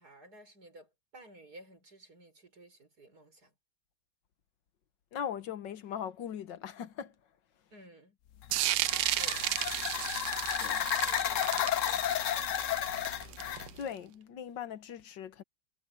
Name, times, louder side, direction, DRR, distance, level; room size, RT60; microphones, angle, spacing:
voice 1, 0.0-3.5 7.7-8.2 9.1-9.5 10.7-12.5, right 1 dB, 60° right, 6.7 m, -55 dB
voice 2, 5.1-7.2 10.6-10.9 13.7-15.4, left 8 dB, 85° left, 1.8 m, -40 dB
sound 1, 8.4-13.7, left 11 dB, 60° left, 0.9 m, -33 dB
sound 2, 8.5-13.8, right 15 dB, 85° right, 1.3 m, -33 dB
omnidirectional pair, 1.9 m